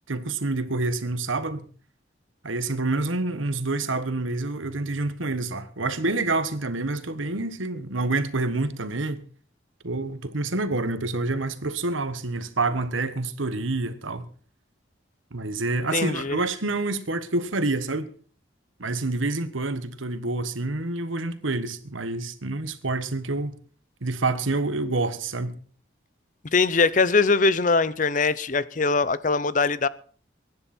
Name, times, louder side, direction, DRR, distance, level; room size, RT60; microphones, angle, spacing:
voice 1, 0.1-1.7 2.4-9.2 9.8-14.3 15.3-18.1 18.8-23.5 24.0-25.6, right 2 dB, 90° right, 1.4 m, -27 dB
voice 2, 15.9-16.4 26.5-29.9, left 4 dB, 40° left, 0.6 m, -22 dB
23.0 x 10.5 x 4.4 m
head